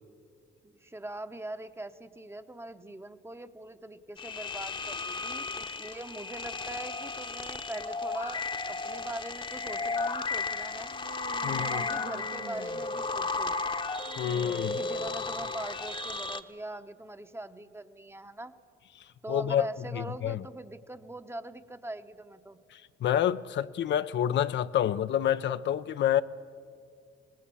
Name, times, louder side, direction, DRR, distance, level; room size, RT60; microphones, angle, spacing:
voice 1, 0.6-10.9 11.5-13.6 14.8-18.5 19.2-22.6, right 1 dB, 10° right, 0.9 m, -42 dB
sound 1, 4.2-16.4, left 3 dB, 25° left, 0.9 m, -34 dB
Human voice, 10.9-13.2 14.0-15.9, right 7 dB, 65° right, 0.9 m, -48 dB
voice 2, 11.4-11.8 14.2-14.8 19.3-19.7 19.9-20.4 22.7-26.2, left 10 dB, 65° left, 0.6 m, -28 dB
24.5 x 19.0 x 6.9 m
cardioid pair, 90°, 20 cm